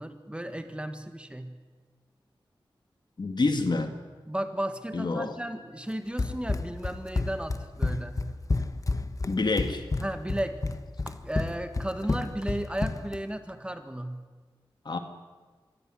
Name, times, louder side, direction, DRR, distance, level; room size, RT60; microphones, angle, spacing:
voice 1, 0.0-1.5 4.3-8.2 10.0-10.6 11.1-14.2, right 1 dB, 10° right, 8 dB, 1.8 m, -34 dB
voice 2, 3.2-3.9 4.9-5.3 9.3-9.8 14.9-15.0, left 3 dB, 55° left, 7 dB, 2.1 m, -27 dB
Run, 6.2-13.2, left 3 dB, 40° left, 1.3 m, -30 dB
24.0 x 16.5 x 10.0 m, 1.4 s
wide cardioid pair, 80°, 9 cm